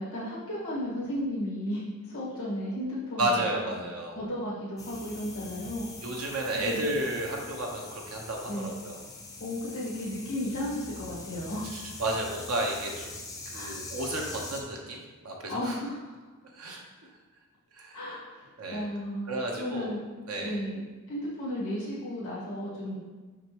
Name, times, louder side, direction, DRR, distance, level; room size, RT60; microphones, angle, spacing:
voice 1, 0.0-3.4 4.1-5.9 6.5-6.9 8.5-8.7 9.4-11.6 13.5-13.7 15.5-16.1 17.9-19.3 19.6-20.0 20.4-20.8 21.1-23.0, left 1 dB, 60° left, -9 dB, 1.7 m, -34 dB
voice 2, 3.2-4.2 6.0-9.0 11.7-13.2 13.5-15.8 16.5-16.8 17.7-18.0 18.6-18.8 19.3-20.0 20.3-20.5, right 1 dB, 85° right, 0 dB, 1.1 m, -32 dB
sound 1, 4.8-14.6, left 3 dB, 15° left, 0.6 m, -43 dB
6.0 x 5.1 x 3.1 m, 1.3 s
head